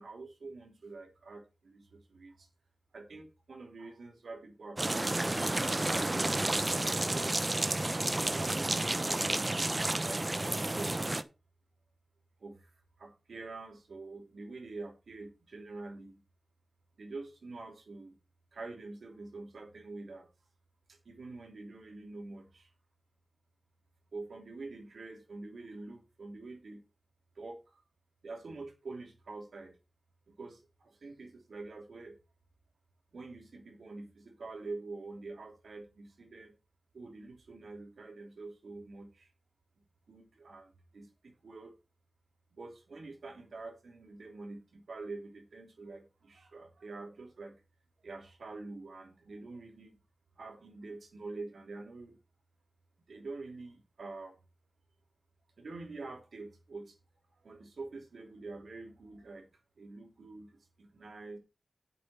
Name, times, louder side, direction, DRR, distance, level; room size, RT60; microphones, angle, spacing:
voice 1, 0.0-2.5 2.9-7.4 8.3-9.4 9.7-11.0 12.4-12.7 13.0-16.2 17.0-18.1 18.5-20.3 20.9-22.7 24.1-26.8 27.3-27.8 28.2-29.8 30.3-32.2 33.1-36.5 36.9-39.3 40.1-41.7 42.5-47.6 48.0-50.0 50.4-52.2 53.1-54.4 55.6-57.0 57.4-59.5 59.8-61.4, right 3 dB, 80° right, 2 dB, 3.3 m, -46 dB
sound 1, 4.8-11.2, right 2 dB, 30° right, 1.0 m, -31 dB
7.7 x 7.7 x 5.8 m, 0.29 s
cardioid pair, 50°, 0 cm